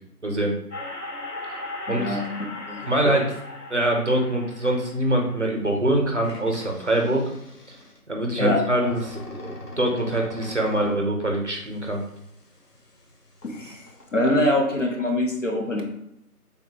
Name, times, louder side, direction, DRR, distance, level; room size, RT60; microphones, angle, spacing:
voice 1, 0.2-0.5 1.9-2.2 2.9-3.3 3.7-7.2 7.7-7.8 8.1-12.0, right 1 dB, 50° right, 1 dB, 0.5 m, -24 dB
sound 1, 0.7-5.7 6.2-8.0 8.7-11.0 11.6-13.1 13.4-14.1, left 2 dB, 85° left, 1.0 m, -39 dB
voice 2, 1.9-2.3 2.7-3.2 8.4-8.6 13.4-13.8 14.1-15.8, left 1 dB, 55° left, 1 dB, 0.6 m, -24 dB
3.5 x 2.2 x 2.7 m, 0.78 s
figure-of-eight pair, 170°, 47 cm